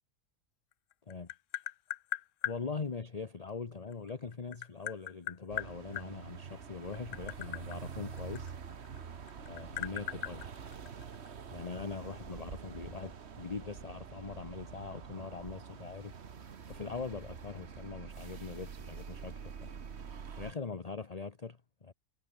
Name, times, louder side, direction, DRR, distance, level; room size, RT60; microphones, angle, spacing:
Tap, 0.7-2.6 3.9-6.1 6.8-9.0 9.3-11.3, left 13 dB, 65° left, 0.9 m, -39 dB
voice 1, 2.4-8.5 9.5-10.5 11.5-16.1 16.7-19.7 20.4-21.9, left 4 dB, 30° left, 1.1 m, -42 dB
sound 1, 5.5-20.5, right 6 dB, 50° right, 1.4 m, -46 dB
omnidirectional pair, 1.5 m